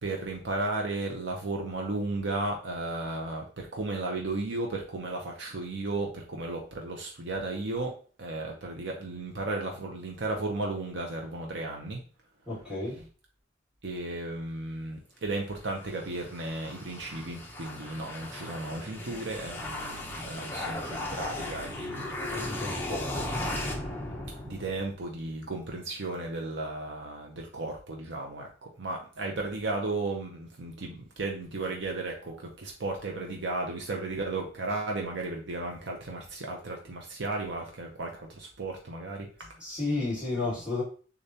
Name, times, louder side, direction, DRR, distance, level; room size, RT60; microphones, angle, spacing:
voice 1, 0.0-7.9 8.2-12.0 13.8-22.8 24.4-39.6, right 2 dB, 70° right, 1 dB, 0.7 m, -34 dB
voice 2, 12.5-13.0 22.3-23.1 39.6-40.8, left 2 dB, 5° right, -7 dB, 2.0 m, -32 dB
sound 1, 15.6-25.0, left 1 dB, 10° left, 0.8 m, -36 dB
6.6 x 2.5 x 2.8 m, 0.40 s
head